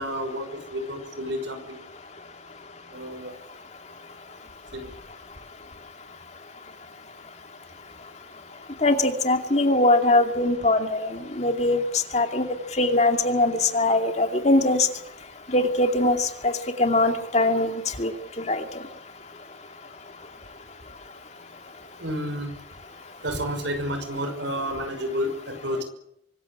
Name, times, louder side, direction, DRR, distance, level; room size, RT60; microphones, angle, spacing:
voice 1, 0.0-1.8 2.9-3.3 4.7-4.9 22.0-22.5 23.2-25.8, equal, 75° right, 8 dB, 5.8 m, -30 dB
voice 2, 8.8-11.1 11.4-11.8 12.1-12.5 12.8-14.9 15.5-16.2 16.4-16.5 16.8-17.7 18.0-18.1 18.5-18.6, left 2 dB, 35° left, 5 dB, 2.5 m, -21 dB
24.5 x 15.0 x 9.9 m, 0.74 s
head